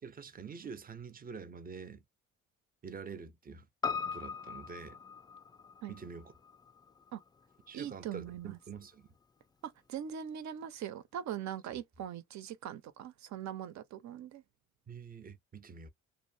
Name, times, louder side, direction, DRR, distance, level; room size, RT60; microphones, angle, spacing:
voice 1, 0.0-2.0 2.8-3.7 4.0-5.0 5.9-6.3 7.7-9.1 14.9-15.9, right 5 dB, 30° right, 0.6 m, -46 dB
Piano, 3.8-8.3 8.6-8.7, left 6 dB, 15° left, 0.3 m, -41 dB
voice 2, 7.7-8.6 9.6-14.4, right 9 dB, 65° right, 0.7 m, -41 dB
2.5 x 2.1 x 2.5 m
cardioid pair, 90°, 30 cm